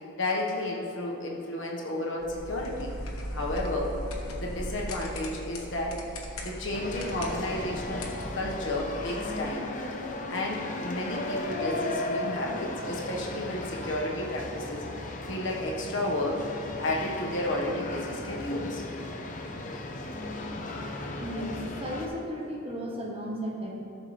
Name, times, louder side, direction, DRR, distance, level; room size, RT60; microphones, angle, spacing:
voice 1, 0.2-2.9 3.3-4.0 4.4-6.0 6.4-8.1 8.3-9.7 10.3-14.8 15.3-16.4 16.8-18.8, left 1 dB, 60° left, -2 dB, 1.4 m, -32 dB
sound 1, 2.2-9.5, equal, 85° left, 1.2 m, -38 dB
sound 2, 6.7-22.1, left 2 dB, 35° left, 0.7 m, -36 dB
voice 2, 21.2-23.8, equal, 25° right, -2 dB, 1.1 m, -35 dB
14.5 x 6.5 x 3.3 m, 2.8 s
head